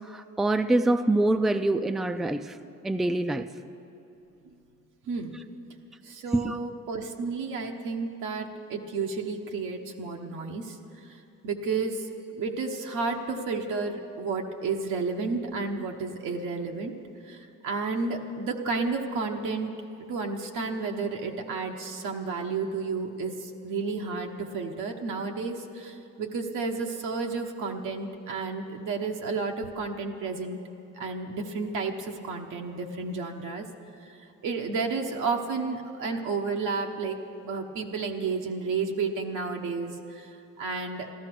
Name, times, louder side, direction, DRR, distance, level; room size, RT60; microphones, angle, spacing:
voice 1, 0.1-2.6 2.8-3.5 6.3-6.6, right 2 dB, ahead, 10 dB, 0.4 m, -25 dB
voice 2, 5.0-5.4 6.0-16.9 17.2-19.7 20.1-30.6 30.9-33.6 34.0-37.2 37.4-41.1, right 4 dB, 85° right, 2 dB, 1.1 m, -32 dB
13.5 x 13.0 x 6.0 m, 2.8 s
cardioid pair, 105°, 30 cm